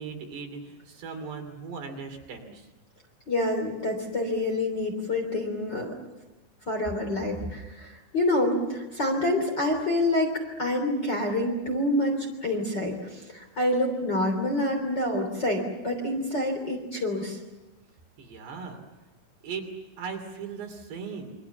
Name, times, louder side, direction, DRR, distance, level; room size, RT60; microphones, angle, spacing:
voice 1, 0.0-2.7 18.2-18.8 19.4-19.7 20.0-21.4, right 5 dB, 60° right, 5 dB, 4.8 m, -38 dB
voice 2, 3.3-5.9 6.7-10.3 10.6-17.4, left 1 dB, 25° left, 2 dB, 3.2 m, -27 dB
28.5 x 24.5 x 7.1 m, 1.1 s
omnidirectional pair, 5.6 m